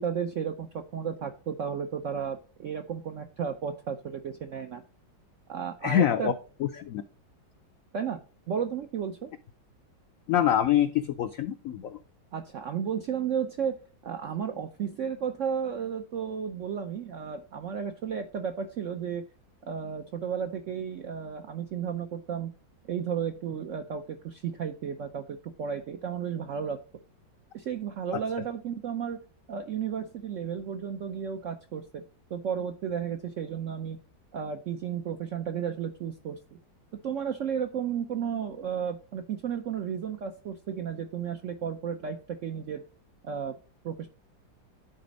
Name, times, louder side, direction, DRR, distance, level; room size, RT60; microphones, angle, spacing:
voice 1, 0.0-4.8 5.5-6.3 7.9-9.3 12.3-19.2 19.6-22.5 22.9-26.8 27.5-29.2 29.5-32.0 32.3-34.0 34.3-36.4 37.0-42.8 43.2-43.6 43.8-44.1, right 7 dB, 75° right, 7 dB, 0.7 m, -33 dB
voice 2, 5.8-6.3 6.6-7.0 10.3-12.0 28.1-28.2, left 10 dB, 80° left, 10 dB, 0.7 m, -25 dB
10.5 x 4.2 x 5.1 m, 0.38 s
omnidirectional pair, 2.0 m